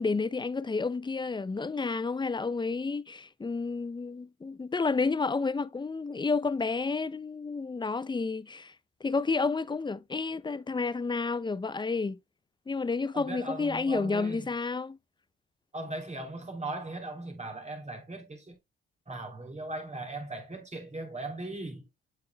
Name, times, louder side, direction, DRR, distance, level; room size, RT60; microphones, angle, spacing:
voice 1, 0.0-8.7 9.0-12.2 12.7-15.0, left 4 dB, 15° left, 0.5 m, -30 dB
voice 2, 13.1-14.5 15.7-18.6 19.1-21.9, right 2 dB, 20° right, 3.1 m, -38 dB
7.7 x 6.6 x 2.2 m
supercardioid pair, 60°, 30 cm